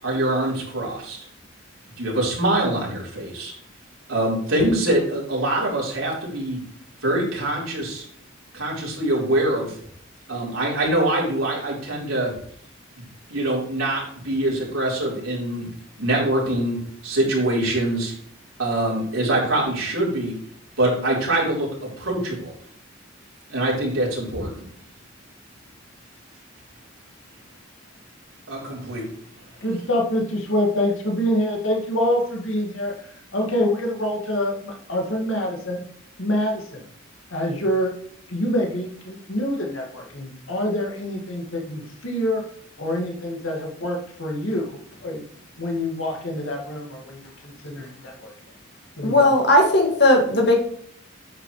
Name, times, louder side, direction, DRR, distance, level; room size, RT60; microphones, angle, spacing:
voice 1, 0.0-1.2 2.0-3.5 4.1-6.6 7.0-8.0 8.5-9.8 10.3-12.3 13.3-15.7 16.0-18.1 18.6-20.4 20.8-22.5 23.5-24.5 28.5-29.1, right 1 dB, 85° right, -4 dB, 4.1 m, -24 dB
voice 2, 29.6-35.8 36.2-36.8 37.3-37.9 38.3-42.4 42.8-45.2 45.6-48.3 49.0-49.3, left 1 dB, 80° left, 1 dB, 2.1 m, -26 dB
voice 3, 49.0-50.5, left 1 dB, 55° left, 2 dB, 2.1 m, -17 dB
9.6 x 7.3 x 3.3 m, 0.63 s
head